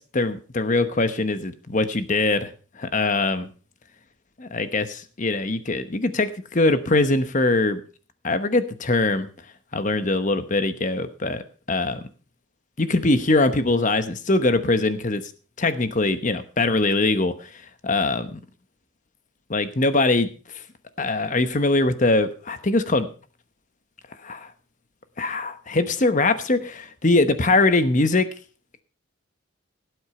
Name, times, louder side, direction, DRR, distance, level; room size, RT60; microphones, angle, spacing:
voice 1, 0.0-2.5 2.8-3.5 4.4-7.8 8.2-9.3 9.7-11.4 11.7-12.0 12.8-15.2 15.6-17.5 17.8-18.4 19.5-20.3 21.0-23.1 24.2-24.5 25.2-28.3, left 2 dB, 35° left, 11 dB, 1.0 m, -22 dB
17.5 x 8.0 x 4.3 m, 0.37 s
head